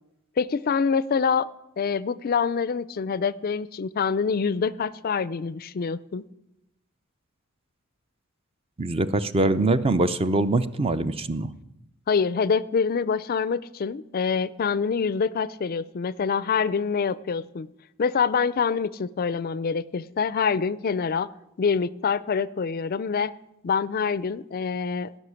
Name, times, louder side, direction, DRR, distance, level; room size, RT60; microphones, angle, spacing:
voice 1, 0.4-1.5 1.8-6.2 12.1-17.7 18.0-21.3 21.6-23.3 23.6-25.1, left 5 dB, 45° left, 18 dB, 0.4 m, -25 dB
voice 2, 8.8-11.5, right 2 dB, 25° right, 12 dB, 0.6 m, -23 dB
16.5 x 6.3 x 9.7 m, 0.89 s
head